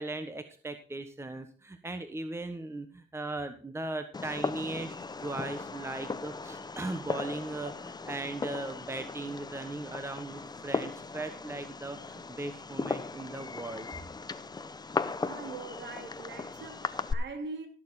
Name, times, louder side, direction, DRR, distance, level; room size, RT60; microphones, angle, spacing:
voice 1, 0.0-13.9, right 2 dB, 15° right, 1.2 m, -38 dB
Fireworks, 4.1-17.1, left 4 dB, 20° left, 0.8 m, -37 dB
voice 2, 15.1-17.7, right 4 dB, 65° right, 2.4 m, -42 dB
16.0 x 6.8 x 4.2 m
cardioid pair, 90°, 20 cm